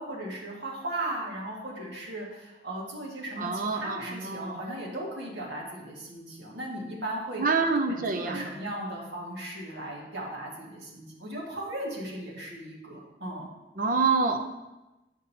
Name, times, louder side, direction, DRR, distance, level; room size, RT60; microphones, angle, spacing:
voice 1, 0.0-7.4 7.9-13.5, right 1 dB, 75° right, -3 dB, 1.7 m, -37 dB
voice 2, 3.4-4.6 7.4-8.5 13.8-14.4, right 4 dB, 50° right, 6 dB, 0.6 m, -26 dB
9.3 x 5.3 x 2.7 m, 1.0 s
head